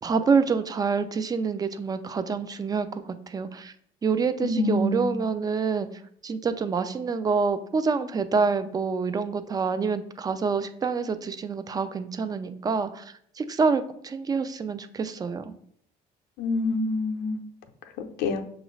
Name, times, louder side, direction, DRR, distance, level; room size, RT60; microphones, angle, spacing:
voice 1, 0.0-3.7 4.0-5.9 6.2-15.5, right 5 dB, 20° right, 11 dB, 0.4 m, -27 dB
voice 2, 4.4-5.2 16.4-17.4 18.0-18.4, left 2 dB, 85° left, 6 dB, 0.6 m, -26 dB
6.1 x 2.5 x 3.1 m, 0.65 s
cardioid pair, 110°, 17 cm